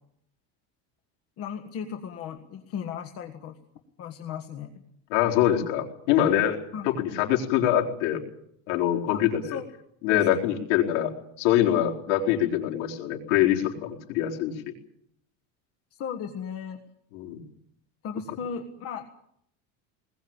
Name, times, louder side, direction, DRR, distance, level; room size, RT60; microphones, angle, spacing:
voice 1, 1.4-3.6 4.0-4.9 6.7-6.9 9.1-9.6 10.1-10.4 15.9-16.8 18.0-19.1, left 7 dB, 40° left, 6 dB, 1.7 m, -36 dB
voice 2, 5.1-8.2 8.7-9.6 10.0-11.1 11.4-14.7 17.1-17.4, left 11 dB, 90° left, 1 dB, 4.4 m, -24 dB
21.0 x 20.5 x 8.9 m, 0.72 s
cardioid pair, 170°, 35 cm